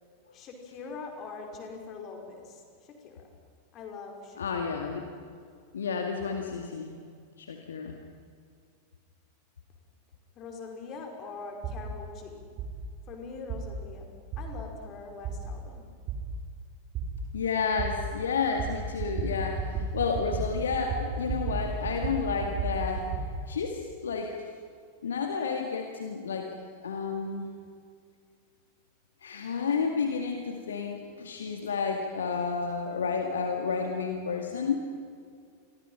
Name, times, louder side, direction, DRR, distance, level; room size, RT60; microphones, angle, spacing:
voice 1, 0.3-3.3 3.7-4.8 10.4-12.5 13.1-15.9, left 4 dB, 35° left, 2 dB, 5.3 m, -43 dB
voice 2, 4.4-5.1 5.7-6.9 7.4-8.0 17.3-23.1 23.5-24.4 25.0-26.5 26.8-27.5 29.2-34.9, left 5 dB, 65° left, 3 dB, 2.1 m, -31 dB
sound 1, 11.6-11.8 12.6-12.7 13.5-13.6 14.3-14.4 15.2-15.4 16.1-16.2 16.9-17.1 17.8-17.9 18.6-18.7 19.0-19.3 19.6-19.9 20.1-20.4 20.7-21.6 21.8-23.2, right 6 dB, 35° right, 5.5 m, -32 dB
29.0 x 23.5 x 5.8 m, 2.2 s
figure-of-eight pair, 90°, 0 cm